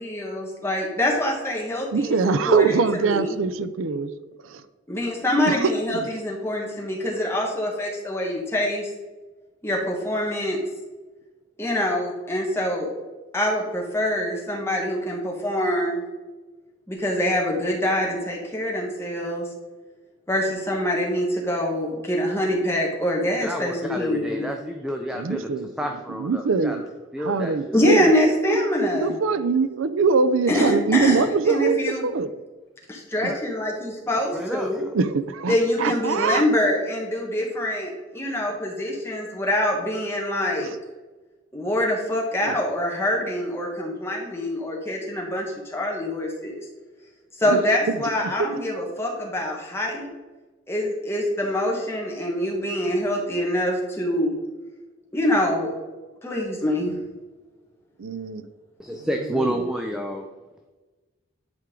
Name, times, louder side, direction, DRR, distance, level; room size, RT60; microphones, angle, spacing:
voice 1, 0.0-3.4 4.9-8.9 9.6-10.6 11.6-12.9 13.3-16.0 16.9-19.4 20.3-24.7 27.7-29.2 30.5-32.1 32.9-34.8 35.5-40.7 41.5-46.5 47.4-50.1 50.7-54.3 55.1-55.7 56.2-56.9, left 1 dB, 10° left, -2 dB, 1.5 m, -25 dB
voice 2, 1.9-4.1 4.5-4.6 5.5-6.1 25.1-25.7 26.2-26.8 27.2-28.1 28.4-28.6 28.9-32.3 33.2-33.3 34.9-36.5 40.6-40.7 42.4-42.6 47.5-47.6 47.9-48.0 48.4-48.6 58.0-58.4 59.3-59.5, right 4 dB, 80° right, 12 dB, 0.5 m, -23 dB
voice 3, 23.4-26.8 27.1-27.6 33.2-33.4 34.3-34.7 58.8-60.3, equal, 5° right, 2 dB, 0.5 m, -30 dB
10.5 x 4.6 x 3.7 m, 1.2 s
head